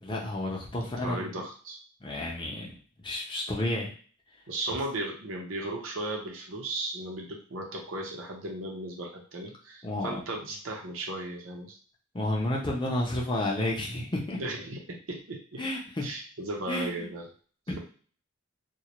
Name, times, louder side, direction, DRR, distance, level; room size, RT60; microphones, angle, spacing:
voice 1, 0.0-1.3 2.0-2.7 3.0-3.9 9.8-10.4 12.1-14.4 15.6-16.1 16.7-16.9 17.7-17.8, left 1 dB, 25° left, -2 dB, 0.6 m, -31 dB
voice 2, 1.0-1.8 4.5-11.8 14.4-15.6 16.0-17.2, right 2 dB, 90° right, 0 dB, 0.7 m, -36 dB
2.3 x 2.0 x 2.9 m, 0.42 s
head